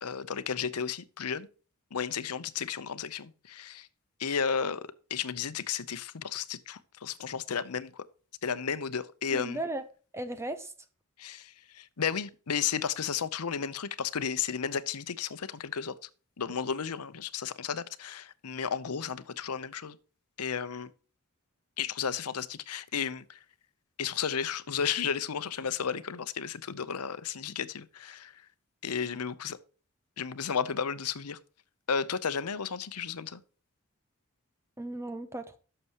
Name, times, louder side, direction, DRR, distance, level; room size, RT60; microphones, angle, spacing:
voice 1, 0.0-1.5 1.9-3.9 4.2-8.0 8.4-9.6 11.2-16.1 16.4-20.0 20.4-20.9 21.8-23.4 24.0-28.4 28.8-29.6 30.2-31.4 31.9-33.4, left 7 dB, 85° left, 0.8 m, -33 dB
voice 2, 9.3-9.8 10.1-10.7 34.8-35.6, right 1 dB, 10° right, 0.7 m, -36 dB
11.0 x 6.8 x 3.0 m
head